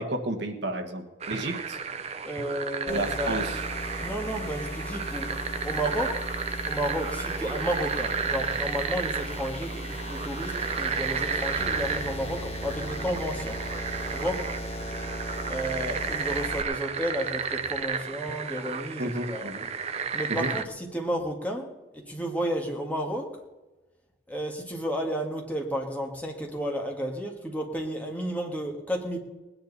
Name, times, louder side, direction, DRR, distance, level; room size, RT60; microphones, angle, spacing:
voice 1, 0.0-1.8 2.8-3.6 19.0-19.7 20.3-20.5, right 1 dB, 60° right, 5 dB, 1.5 m, -31 dB
sound 1, 1.2-20.7, right 6 dB, 35° right, 0.5 m, -33 dB
voice 2, 2.2-3.4 4.0-6.2 6.6-13.6 14.1-14.5 15.5-19.5 20.1-23.3 24.3-29.2, equal, 10° left, 1 dB, 1.7 m, -32 dB
sound 2, 2.9-16.6, equal, 30° left, 1.1 m, -36 dB
Bass guitar, 11.6-17.8, left 3 dB, 75° right, 1.3 m, -48 dB
19.5 x 10.0 x 4.1 m, 1.1 s
head